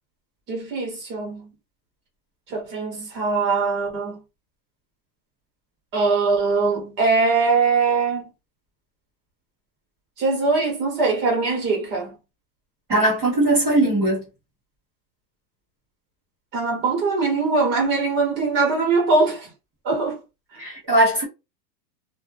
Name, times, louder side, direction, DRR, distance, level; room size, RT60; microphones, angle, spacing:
voice 1, 0.5-1.5 2.5-4.2 5.9-8.3 10.2-12.2 16.5-19.5 19.8-20.2 20.5-20.6, right 4 dB, 20° right, 0.9 m, -22 dB
voice 2, 12.9-14.2 20.6-21.2, right 1 dB, 5° right, 0.3 m, -19 dB
2.1 x 2.0 x 3.2 m
supercardioid pair, 160°, 49 cm